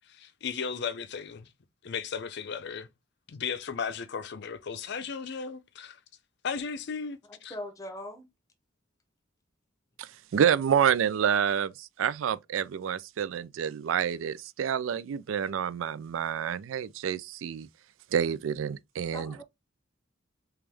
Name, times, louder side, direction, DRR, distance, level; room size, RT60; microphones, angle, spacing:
voice 1, 0.1-1.5 1.8-2.9 3.3-6.0 6.4-7.5, left 6 dB, 60° left, 0.5 m, -35 dB
voice 2, 7.3-8.3 19.1-19.4, left 1 dB, 15° left, 0.7 m, -40 dB
voice 3, 10.0-17.7 18.1-19.4, right 8 dB, 85° right, 0.4 m, -28 dB
3.5 x 3.0 x 3.3 m
head